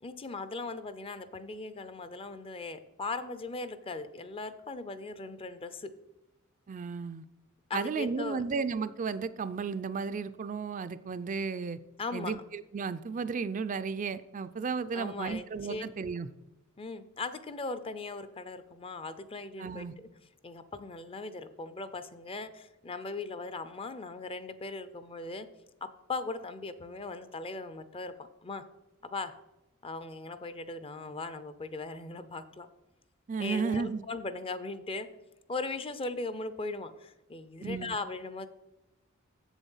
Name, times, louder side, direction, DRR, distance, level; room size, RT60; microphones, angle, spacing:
voice 1, 0.0-5.9 7.7-8.4 12.0-12.4 14.9-15.8 16.8-20.1 20.4-25.5 25.8-28.6 29.0-29.3 29.8-32.7 33.4-35.1 35.5-38.5, left 3 dB, 25° left, 13 dB, 0.5 m, -39 dB
voice 2, 6.7-7.3 7.7-11.8 12.1-16.3 19.6-19.9 33.3-34.0 37.6-37.9, right 5 dB, 40° right, 12 dB, 0.4 m, -34 dB
7.4 x 7.2 x 5.5 m, 1.0 s
head